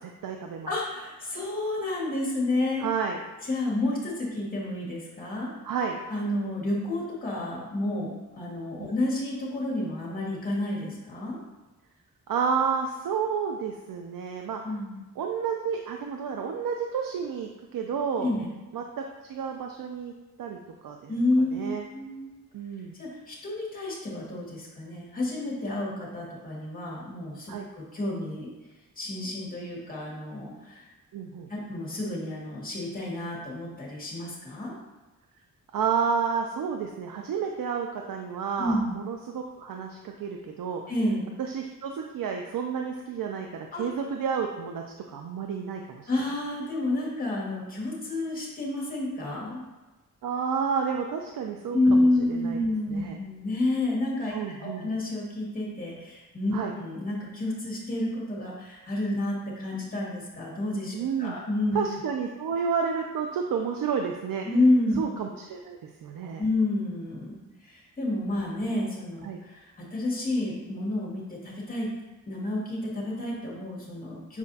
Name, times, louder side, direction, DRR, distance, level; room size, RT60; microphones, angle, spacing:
voice 1, 0.0-0.7 2.8-3.2 5.6-6.0 8.8-8.9 12.3-14.6 15.2-18.3 18.7-20.1 20.4-20.6 20.8-21.1 21.5-21.8 22.5-22.9 27.5-27.6 31.1-31.5 35.7-40.8 41.4-46.1 50.2-52.6 52.9-53.2 54.3-54.9 56.5-56.7 60.9-61.4 61.7-64.5 65.0-66.4 69.2-69.4, right 6 dB, 80° right, 3 dB, 0.6 m, -30 dB
voice 2, 0.7-2.8 3.4-5.5 6.1-11.4 14.6-15.0 18.2-18.5 21.1-22.3 23.0-28.5 29.0-30.8 31.5-34.7 38.6-38.9 40.9-41.3 43.7-43.9 46.1-49.6 51.7-54.3 54.6-61.8 64.5-65.0 66.4-71.9 72.3-74.4, left 1 dB, 25° left, -5 dB, 2.0 m, -29 dB
7.3 x 4.8 x 2.8 m, 1.2 s
wide cardioid pair, 110°, 33 cm